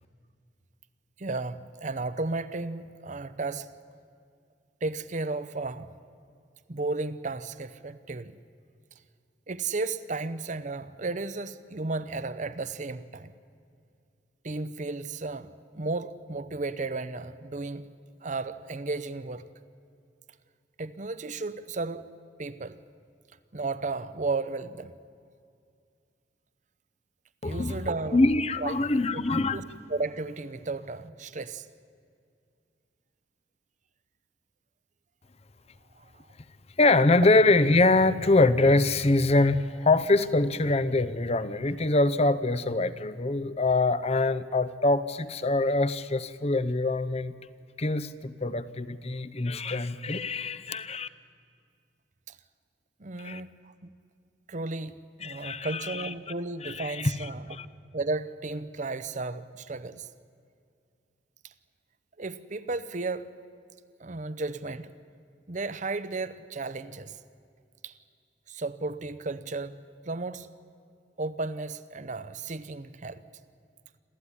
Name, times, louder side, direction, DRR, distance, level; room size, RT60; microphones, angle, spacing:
voice 1, 1.2-3.7 4.8-5.9 6.7-8.4 9.5-13.3 14.4-15.5 15.7-17.9 18.2-19.5 20.8-22.1 22.4-22.8 23.5-24.9 27.4-28.2 28.6-29.6 29.9-31.7 36.0-36.2 52.3-52.4 53.0-53.7 54.5-57.5 57.9-60.1 61.4-61.5 62.2-63.3 64.0-64.9 65.5-67.2 67.8-67.9 68.5-70.5 71.2-73.2, right 3 dB, 40° right, 0.8 m, -34 dB
voice 2, 27.4-27.8 28.1-29.6 36.8-47.3 47.8-51.1 53.2-53.4 55.2-56.0 56.6-57.1 57.6-57.7, left 2 dB, 35° left, 0.7 m, -24 dB
27.0 x 14.0 x 9.9 m
head